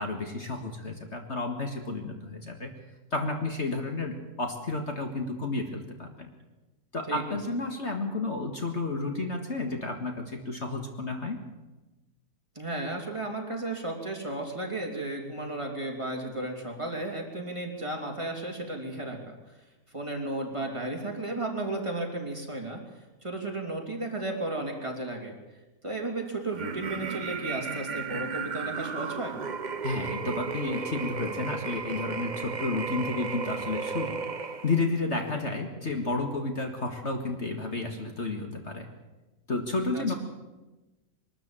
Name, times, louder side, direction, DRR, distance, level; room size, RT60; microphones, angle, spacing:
voice 1, 0.0-2.7 3.1-6.3 6.9-11.4 29.8-34.2 34.6-38.9 39.5-40.1, left 3 dB, 45° left, 4 dB, 2.1 m, -31 dB
voice 2, 7.1-7.4 12.5-19.3 19.9-22.8 23.2-25.4 25.8-29.3 39.9-40.2, right 2 dB, 20° right, 0 dB, 3.1 m, -34 dB
sound 1, 26.5-34.9, right 5 dB, 35° right, 0.9 m, -34 dB
22.5 x 13.0 x 8.9 m, 1.1 s
omnidirectional pair, 1.7 m